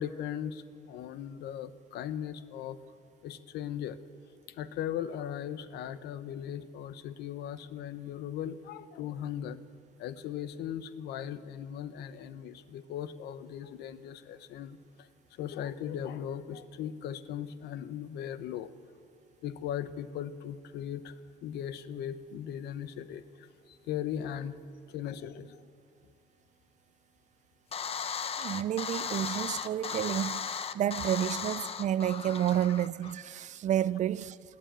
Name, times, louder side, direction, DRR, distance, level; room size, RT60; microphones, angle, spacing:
voice 1, 0.0-2.8 3.2-4.0 4.5-9.6 10.0-18.7 19.4-24.6 24.9-25.7, left 10 dB, 75° left, 0.7 m, -38 dB
sound 1, 27.7-33.1, left 6 dB, 35° left, 0.7 m, -36 dB
voice 2, 28.4-34.4, right 11 dB, 45° right, 0.4 m, -30 dB
19.0 x 7.7 x 8.9 m
cardioid pair, 110°, 17 cm